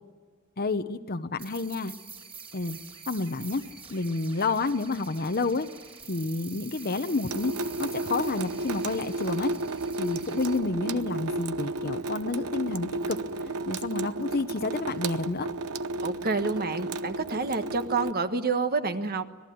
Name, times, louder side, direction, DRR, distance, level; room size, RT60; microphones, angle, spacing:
voice 1, 0.6-1.9 2.5-2.8 3.1-3.6 3.9-5.7 6.1-7.5 7.8-9.5 10.0-13.2 13.4-15.5, left 3 dB, 45° left, 8 dB, 0.9 m, -29 dB
sound 1, 1.4-10.6, right 5 dB, 25° right, 3.6 m, -46 dB
Water tap faucet / Sink (filling or washing) / Drip, 7.3-18.1, right 2 dB, 85° right, 0.9 m, -33 dB
voice 2, 16.0-19.3, right 4 dB, 45° right, 10 dB, 1.3 m, -28 dB
26.0 x 19.0 x 9.4 m, 1.4 s
head